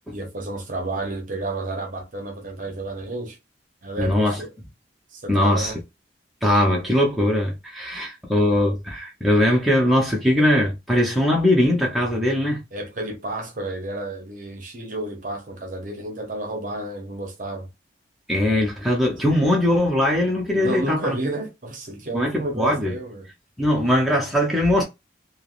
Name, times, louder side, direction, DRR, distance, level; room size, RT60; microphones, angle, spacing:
voice 1, 0.1-3.4 3.8-4.5 5.1-5.8 12.7-17.7 20.5-23.3, right 2 dB, 40° right, 0.7 m, -31 dB
voice 2, 4.0-4.4 5.3-5.7 6.4-12.6 18.3-21.2 22.1-22.9 23.6-24.8, left 1 dB, ahead, 0.6 m, -20 dB
3.2 x 2.0 x 2.4 m
head